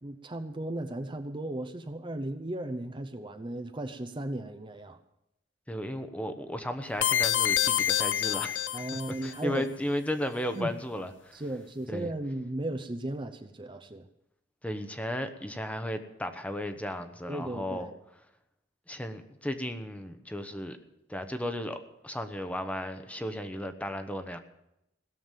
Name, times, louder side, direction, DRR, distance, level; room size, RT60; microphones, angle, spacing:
voice 1, 0.0-5.0 8.7-9.7 10.6-10.7 11.3-14.1 17.3-18.0, right 1 dB, 25° right, 8 dB, 0.7 m, -36 dB
voice 2, 5.7-8.6 9.2-11.4 11.9-12.1 14.6-17.9 18.9-20.8 21.1-24.4, left 1 dB, 10° left, 8 dB, 1.0 m, -34 dB
sound 1, 7.0-9.3, left 11 dB, 90° left, 0.6 m, -27 dB
17.0 x 7.2 x 9.1 m, 0.84 s
head